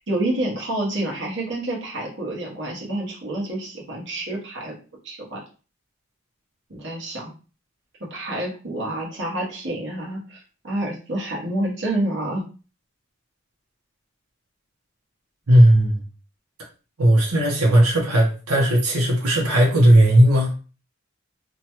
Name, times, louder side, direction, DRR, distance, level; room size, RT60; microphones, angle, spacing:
voice 1, 0.0-4.7 5.0-5.4 6.7-7.3 8.0-12.5, right 1 dB, 55° right, -2 dB, 1.0 m, -28 dB
voice 2, 15.5-16.0 17.0-20.5, right 1 dB, 90° right, -1 dB, 0.8 m, -16 dB
2.8 x 2.2 x 2.9 m, 0.35 s
head